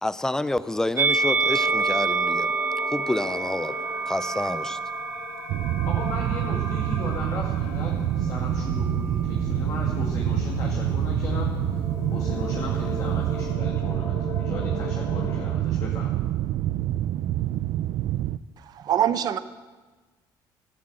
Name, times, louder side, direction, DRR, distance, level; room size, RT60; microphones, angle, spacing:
voice 1, 0.0-2.5 2.9-3.7 4.1-4.8, left 1 dB, 5° left, 14 dB, 0.5 m, -28 dB
Musical instrument, 1.0-7.4 8.2-9.2, right 4 dB, 30° right, 1.9 m, -28 dB
sound 1, 1.2-15.5, left 4 dB, 80° left, 5.1 m, -36 dB
sound 2, 5.5-18.4, right 13 dB, 70° right, 0.4 m, -27 dB
voice 2, 5.8-11.8 12.1-16.1, left 3 dB, 45° left, -2 dB, 2.1 m, -36 dB
voice 3, 18.6-19.4, right 10 dB, 50° right, 13 dB, 0.8 m, -24 dB
13.0 x 11.5 x 7.8 m, 1.3 s
cardioid pair, 140°, 9 cm